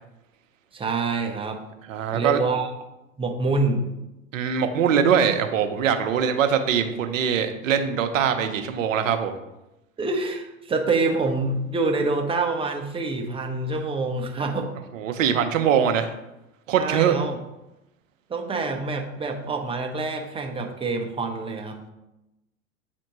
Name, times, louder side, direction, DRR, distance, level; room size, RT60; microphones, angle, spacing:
voice 1, 0.7-1.6 2.1-2.7 3.2-3.9 10.0-14.7 16.7-17.4 18.3-21.9, right 3 dB, 15° right, 3 dB, 0.8 m, -26 dB
voice 2, 1.9-2.4 4.3-9.4 14.9-16.1 16.7-17.2, right 8 dB, 70° right, 7 dB, 0.8 m, -22 dB
8.2 x 4.2 x 3.1 m, 0.95 s
hypercardioid pair, 90°, 41 cm